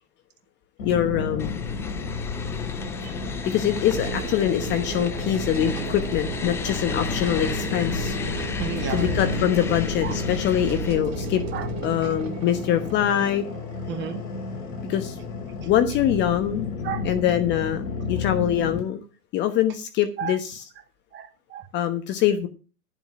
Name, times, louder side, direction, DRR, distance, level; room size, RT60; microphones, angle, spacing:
sound 1, 0.8-18.8, left 4 dB, 55° left, 5.8 m, -32 dB
voice 1, 0.8-1.5 3.4-8.2 8.9-11.4 11.8-13.4 14.9-15.2 15.6-16.7 17.0-19.0 19.3-20.6 21.7-22.5, left 10 dB, 25° left, 9 dB, 1.1 m, -24 dB
sound 2, 1.4-10.9, left 5 dB, 5° left, 0.5 m, -34 dB
sound 3, 3.9-14.0, right 7 dB, 55° right, 2.1 m, -36 dB
voice 2, 8.6-9.5 10.0-10.2 11.5-11.7 13.9-14.2 16.8-17.0 20.2-20.4 21.1-21.7, right 8 dB, 25° right, 8 dB, 1.7 m, -32 dB
11.5 x 7.6 x 6.0 m, 0.34 s
hypercardioid pair, 120°, 44 cm